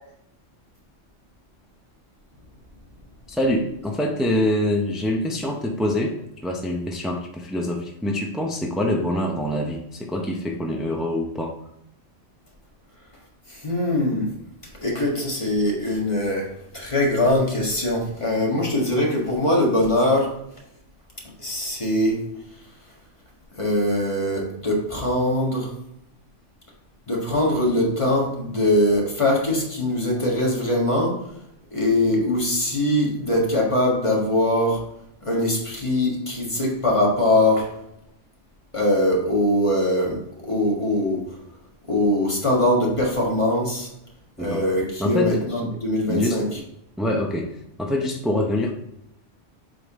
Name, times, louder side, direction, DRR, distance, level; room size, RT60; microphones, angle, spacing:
voice 1, 3.3-6.2 6.4-11.6 44.4-44.6 45.0-45.7 46.1-46.5 47.0-47.5 47.8-48.7, left 1 dB, ahead, 1 dB, 0.3 m, -25 dB
voice 2, 13.5-14.3 14.8-16.5 16.7-20.3 21.4-22.2 23.5-25.7 27.1-31.2 31.7-34.8 35.2-37.7 38.7-41.2 41.9-43.9 44.4-46.6, left 1 dB, 25° left, -2 dB, 1.5 m, -22 dB
7.7 x 3.7 x 4.0 m, 0.80 s
omnidirectional pair, 1.3 m